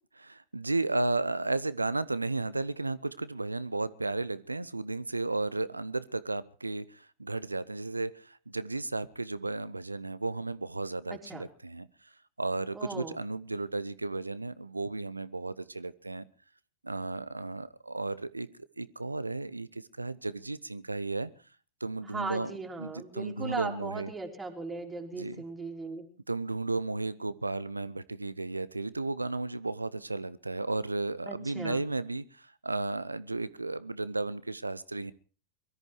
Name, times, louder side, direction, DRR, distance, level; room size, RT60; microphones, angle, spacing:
voice 1, 0.2-12.1 12.4-16.2 16.8-21.3 21.8-22.5 22.8-24.1 25.1-25.4 26.3-35.1, right 2 dB, 80° right, 17 dB, 0.7 m, -34 dB
voice 2, 11.1-11.4 12.7-13.2 22.0-26.0 31.2-31.8, right 3 dB, 10° right, 2 dB, 3.5 m, -38 dB
22.5 x 13.5 x 4.6 m, 0.38 s
figure-of-eight pair, 90°, 0 cm